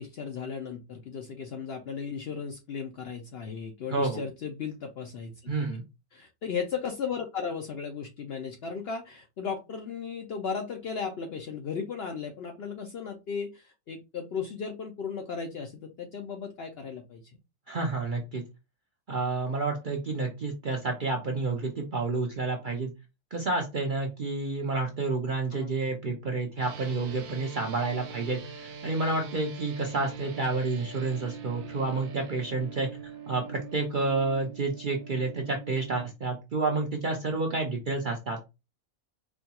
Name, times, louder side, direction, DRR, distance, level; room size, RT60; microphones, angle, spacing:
voice 1, 0.0-5.5 6.1-17.2 25.5-25.7, left 6 dB, 65° left, 4 dB, 0.6 m, -36 dB
voice 2, 3.9-4.2 5.5-5.8 17.7-18.4 19.1-22.9 23.3-32.9 33.3-38.4, right 3 dB, 55° right, 1 dB, 0.5 m, -29 dB
sound 1, 26.6-36.1, right 6 dB, 70° right, 1.0 m, -44 dB
4.4 x 2.3 x 2.8 m, 0.25 s
omnidirectional pair, 1.5 m